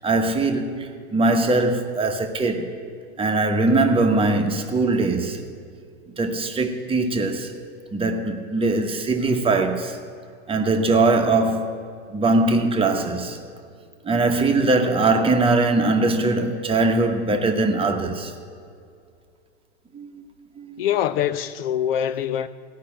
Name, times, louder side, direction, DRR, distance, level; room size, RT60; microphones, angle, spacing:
voice 1, 0.0-2.7 3.2-5.4 6.2-7.5 7.9-10.0 10.5-11.8 12.1-13.4 14.0-18.3 19.9-20.2 20.6-20.8, right 2 dB, 15° right, 1.1 m, -21 dB
voice 2, 20.8-22.5, left 10 dB, 55° left, 0.6 m, -24 dB
16.5 x 5.7 x 8.7 m
hypercardioid pair, 115°, 35 cm